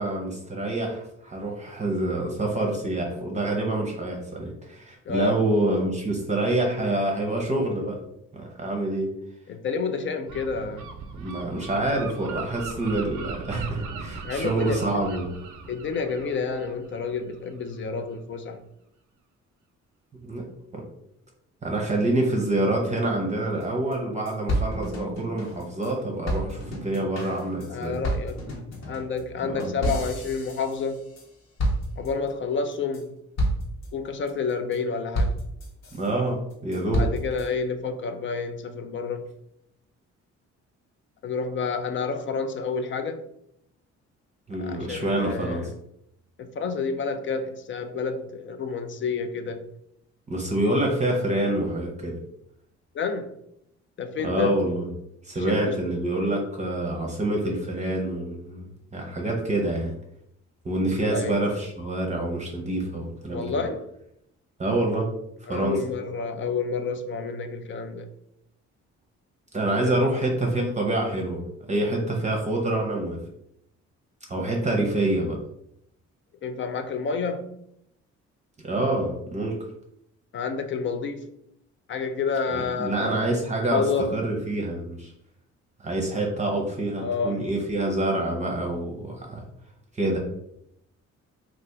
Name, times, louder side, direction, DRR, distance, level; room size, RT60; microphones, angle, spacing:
voice 1, 0.0-8.0 8.3-9.1 11.2-15.3 20.2-20.4 20.7-20.8 21.6-28.0 29.4-29.7 35.9-37.1 44.5-45.7 50.3-52.2 54.2-54.9 55.2-59.9 60.6-63.5 64.6-65.1 65.4-65.8 69.5-73.2 74.3-75.4 78.6-79.6 82.5-85.1 85.8-89.4 89.9-90.2, right 1 dB, 25° right, 0 dB, 0.7 m, -27 dB
voice 2, 5.1-5.4 9.5-10.9 14.2-15.2 15.7-18.6 27.7-28.4 28.9-31.0 32.0-33.1 33.9-35.3 36.9-39.2 41.2-43.2 44.6-45.7 46.4-49.7 52.9-53.3 54.0-54.6 55.5-55.8 61.1-61.5 63.3-63.8 65.5-68.1 69.7-70.1 76.4-77.4 80.3-81.2 81.9-83.3 83.7-84.2 87.0-87.4, left 5 dB, 40° left, 8 dB, 0.4 m, -29 dB
Gull seagull, 10.3-17.8, right 5 dB, 80° right, 0.5 m, -39 dB
sound 1, 23.6-23.7 23.9-24.0 24.3-25.9 26.3-31.3 31.6-32.3 32.7-33.0 33.4-33.9 34.3-34.8 35.1-36.1 36.5-37.5, right 1 dB, 60° left, 1.0 m, -30 dB
2.8 x 2.4 x 3.5 m, 0.76 s
cardioid pair, 90°, 30 cm